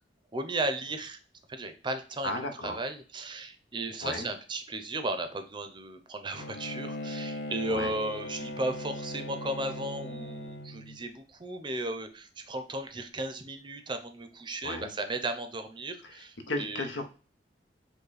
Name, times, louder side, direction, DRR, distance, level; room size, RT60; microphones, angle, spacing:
voice 1, 0.3-1.2 1.5-2.3 2.6-16.9, right 2 dB, 25° right, 8 dB, 0.5 m, -35 dB
voice 2, 2.2-2.8 4.0-4.3 7.7-7.9 14.6-14.9 16.5-17.1, left 2 dB, 90° left, 5 dB, 0.9 m, -34 dB
Bowed string instrument, 6.3-11.0, left 1 dB, 65° left, 0.5 m, -39 dB
5.3 x 2.2 x 4.1 m, 0.36 s
head